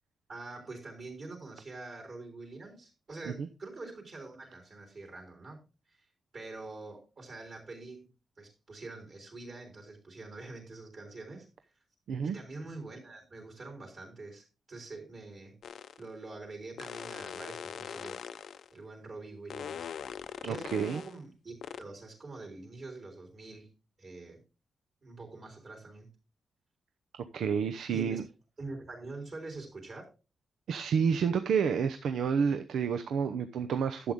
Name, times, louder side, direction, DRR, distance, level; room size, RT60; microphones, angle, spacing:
voice 1, 0.3-5.6 5.9-6.1 6.3-8.1 8.4-11.5 12.2-15.5 16.0-18.2 18.7-19.9 20.4-23.7 24.0-24.4 25.0-26.1 27.9-28.2 28.6-30.1, right 3 dB, 40° right, 3.8 m, -45 dB
sound 1, 15.6-16.1 16.8-18.7 19.5-21.2 21.6-21.8, left 8 dB, 65° left, 0.6 m, -42 dB
voice 2, 20.4-21.0 27.3-28.2 30.7-34.1, right 6 dB, 85° right, 0.7 m, -29 dB
11.5 x 7.7 x 3.6 m
wide cardioid pair, 180°, 0 cm